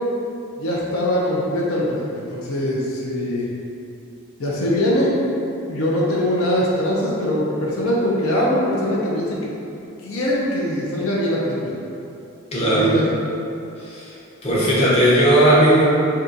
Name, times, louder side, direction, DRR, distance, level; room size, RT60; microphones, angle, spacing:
voice 1, 0.6-3.5 4.4-5.1 5.7-9.5 10.0-11.8 12.6-13.0, equal, 85° left, -5 dB, 0.6 m, -22 dB
voice 2, 12.5-12.9 13.8-14.1 14.4-15.8, right 1 dB, 30° left, -8 dB, 0.6 m, -16 dB
2.7 x 2.3 x 3.7 m, 2.8 s
head